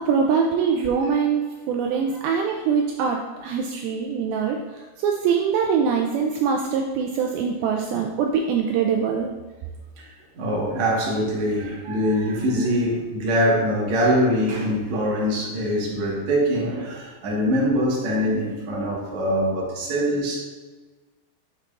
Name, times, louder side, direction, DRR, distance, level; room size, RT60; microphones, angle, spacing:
voice 1, 0.0-9.3, right 6 dB, 85° right, 2 dB, 2.3 m, -23 dB
voice 2, 10.0-20.4, equal, 60° right, -4 dB, 2.2 m, -23 dB
6.7 x 5.8 x 2.4 m, 1.3 s
omnidirectional pair, 4.4 m